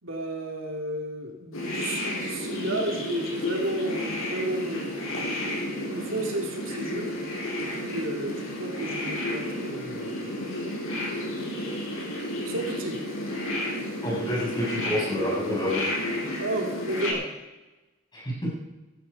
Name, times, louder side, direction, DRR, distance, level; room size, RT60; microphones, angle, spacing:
voice 1, 0.0-5.1 5.4-7.1 7.6-10.9 12.4-13.0 16.3-17.2, right 1 dB, 75° right, 1 dB, 2.5 m, -33 dB
sound 1, 1.5-17.1, left 1 dB, 85° left, 6.3 m, -32 dB
voice 2, 14.0-15.8 18.1-18.6, equal, 20° left, -4 dB, 6.9 m, -28 dB
16.5 x 14.0 x 5.3 m, 1.1 s
head